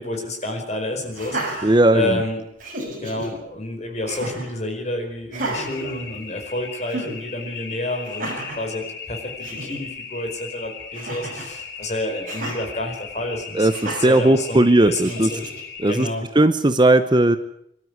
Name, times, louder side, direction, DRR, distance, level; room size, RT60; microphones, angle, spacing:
voice 1, 0.0-2.4 3.0-13.7 14.0-15.4 15.9-16.2, left 1 dB, 35° left, 3 dB, 5.0 m, -29 dB
Laughter, 1.1-2.2 2.6-3.3 4.1-4.5 5.3-6.5 6.9-7.2 8.0-8.6 9.1-9.2 9.4-9.8 10.9-11.5 12.3-12.6 13.7-14.2 15.0-15.6, right 1 dB, 45° right, 6.7 m, -32 dB
voice 2, 1.6-2.2 13.5-15.3 15.8-16.1 16.3-17.4, right 1 dB, 20° right, 10 dB, 0.7 m, -17 dB
sound 1, 5.5-16.1, left 6 dB, 65° left, 3.3 m, -37 dB
24.5 x 12.5 x 9.5 m, 0.76 s
head